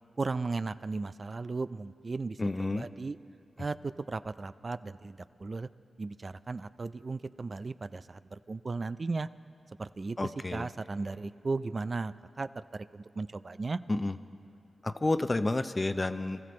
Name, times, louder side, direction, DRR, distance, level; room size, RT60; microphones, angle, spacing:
voice 1, 0.2-3.2 3.6-5.7 6.0-9.3 9.8-13.8, right 3 dB, 50° right, 14 dB, 0.4 m, -36 dB
voice 2, 2.4-2.9 10.2-10.7 13.9-14.1 14.8-16.4, left 2 dB, 35° left, 11 dB, 0.6 m, -30 dB
24.0 x 14.5 x 3.2 m, 2.6 s
cardioid pair, 45°, 0 cm